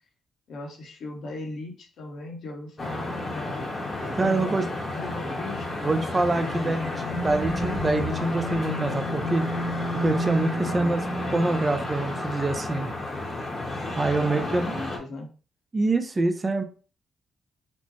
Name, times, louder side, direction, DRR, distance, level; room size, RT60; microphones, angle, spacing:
voice 1, 0.5-6.1 6.4-7.0 10.6-11.0 14.1-15.3, left 2 dB, 65° left, 1 dB, 1.0 m, -38 dB
sound 1, 2.8-15.0, left 1 dB, 30° left, 0.9 m, -31 dB
voice 2, 4.2-4.6 5.8-9.5 9.9-11.0 11.3-12.9 14.0-14.7 15.7-16.6, right 2 dB, 25° right, 6 dB, 0.4 m, -25 dB
4.3 x 2.0 x 2.9 m, 0.37 s
cardioid pair, 135°, 0 cm